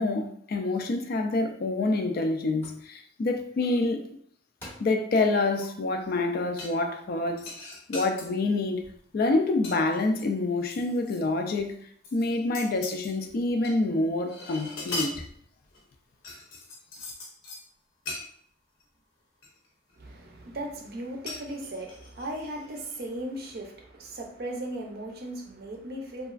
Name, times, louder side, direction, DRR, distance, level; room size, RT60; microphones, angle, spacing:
voice 1, 0.0-4.2 4.8-7.4 7.9-8.8 9.1-11.9 12.1-15.2, left 2 dB, 45° left, 0.3 m, -27 dB
sound 1, 2.6-2.8 4.0-4.1 4.6-5.0 5.6-5.7, left 1 dB, 10° left, 0.6 m, -46 dB
sound 2, 6.6-7.0 7.4-8.3 8.8-9.1 9.4-11.2 11.6-11.7 12.0-13.7 14.0-15.8 16.2-17.6 18.0-18.2 18.8-18.9 19.4-20.1 21.3-23.0 23.4-23.5, left 2 dB, 85° left, 0.8 m, -40 dB
voice 2, 20.0-26.3, right 1 dB, 50° right, 0.5 m, -37 dB
2.9 x 2.3 x 2.4 m
head